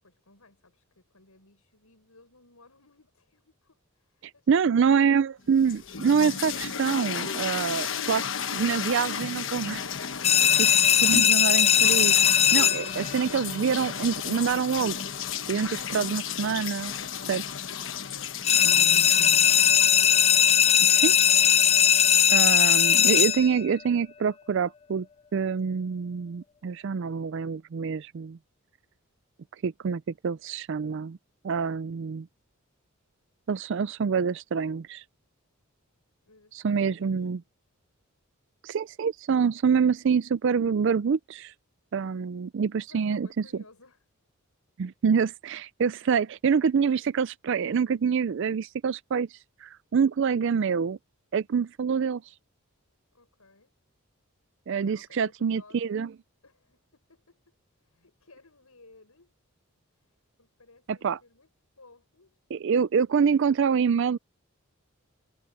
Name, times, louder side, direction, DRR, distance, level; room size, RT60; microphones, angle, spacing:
voice 1, 0.0-5.1 17.6-19.5 36.2-37.3 42.9-44.0 46.9-47.0 53.1-53.7 54.8-56.1 56.4-59.3 59.9-61.5 61.8-62.4, left 3 dB, 85° left, 6.6 m, -58 dB
voice 2, 4.5-9.8 10.6-15.0 15.5-16.9 17.3-17.4 18.6-19.3 20.8-21.2 22.3-25.1 25.3-28.4 29.6-31.2 31.4-32.3 33.5-35.0 36.5-37.4 38.6-41.5 41.9-43.4 44.8-51.0 51.3-52.2 54.7-56.1 60.9-61.2 62.5-64.2, right 6 dB, 55° right, 0.4 m, -26 dB
sound 1, 5.5-21.5, left 7 dB, 60° left, 1.2 m, -34 dB
sound 2, 10.2-13.1 18.4-23.6, left 9 dB, 25° left, 0.3 m, -19 dB
head